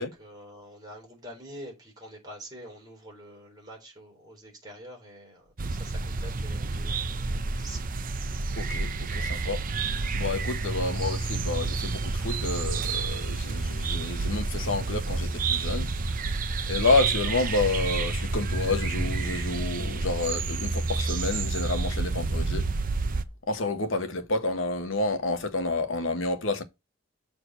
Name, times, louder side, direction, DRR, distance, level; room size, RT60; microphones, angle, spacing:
voice 1, 0.0-7.8, equal, 20° right, 3.8 m, -46 dB
sound 1, 5.6-23.2, right 3 dB, 40° right, 0.6 m, -29 dB
voice 2, 8.6-16.2 16.7-22.7 23.5-26.6, left 3 dB, 70° left, 1.2 m, -29 dB
6.6 x 4.3 x 6.2 m
head